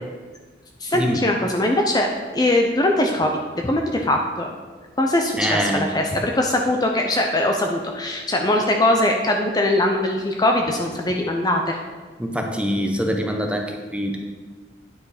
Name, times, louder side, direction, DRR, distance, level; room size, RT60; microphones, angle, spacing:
voice 1, 0.8-3.3 3.6-4.5 5.0-11.8, left 1 dB, 20° left, 2 dB, 0.6 m, -21 dB
voice 2, 5.4-5.9 12.2-14.2, equal, 5° right, 3 dB, 0.8 m, -24 dB
9.4 x 5.1 x 5.0 m, 1.4 s
head